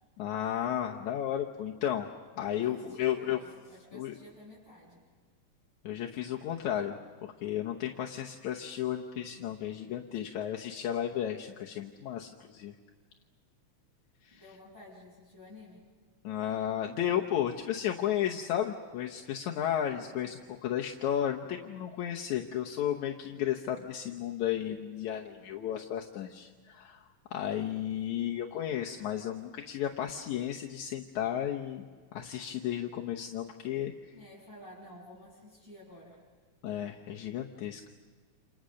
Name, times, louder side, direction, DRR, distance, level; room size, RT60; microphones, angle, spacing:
voice 1, 0.2-2.1 2.4-3.4 3.9-4.1 5.8-12.7 14.2-14.4 16.2-27.0 27.3-31.9 32.1-33.9 36.6-37.9, left 10 dB, 75° left, 1 dB, 2.4 m, -33 dB
voice 2, 2.5-5.0 14.3-15.8 19.9-20.4 34.1-36.2, left 1 dB, 10° right, -8 dB, 7.0 m, -52 dB
29.0 x 28.0 x 6.5 m, 1.5 s
omnidirectional pair, 3.4 m